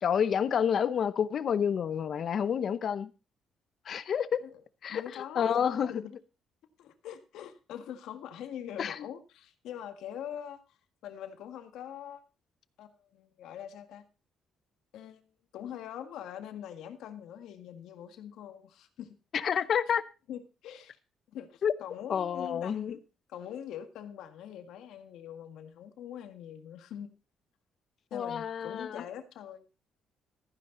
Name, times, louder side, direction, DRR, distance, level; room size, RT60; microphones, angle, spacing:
voice 1, 0.0-3.1 3.9-4.4 4.8-5.9 8.8-9.1 19.3-20.0 21.6-21.7 22.1-23.0 28.1-29.0, left 8 dB, 45° left, 0.8 m, -29 dB
voice 2, 4.9-5.5 5.9-6.1 6.8-10.8 11.0-12.2 12.8-14.0 14.9-15.2 15.5-19.2 19.5-19.6 20.3-20.9 21.3-23.0 23.3-27.1 28.1-29.6, left 10 dB, 80° left, 1.8 m, -43 dB
14.5 x 9.9 x 3.9 m
cardioid pair, 145°, 0 cm